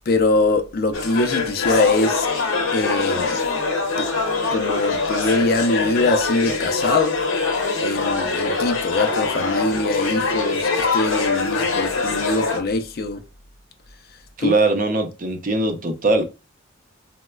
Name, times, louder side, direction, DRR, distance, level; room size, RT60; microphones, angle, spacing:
voice 1, 0.1-2.3 2.7-3.4 4.0-4.1 4.5-7.2 7.8-13.2 14.4-14.5, left 3 dB, 50° left, 0.4 m, -22 dB
sound 1, 0.9-12.6, left 3 dB, 75° left, 0.8 m, -23 dB
voice 2, 14.4-16.2, right 2 dB, 40° right, 0.6 m, -21 dB
4.0 x 2.1 x 2.2 m
head